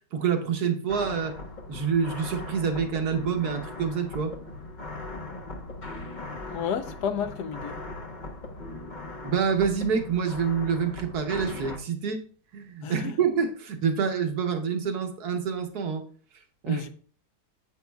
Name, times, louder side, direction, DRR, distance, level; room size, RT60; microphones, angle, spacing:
voice 1, 0.1-1.3 1.7-4.3 9.2-12.2 12.5-16.0 16.6-16.8, right 6 dB, 65° right, 1.4 m, -27 dB
sound 1, 0.9-11.8, left 2 dB, 35° left, 0.7 m, -39 dB
voice 2, 6.5-7.8 12.8-13.1 16.7-16.9, left 7 dB, 70° left, 1.2 m, -31 dB
9.2 x 8.0 x 2.3 m
omnidirectional pair, 1.9 m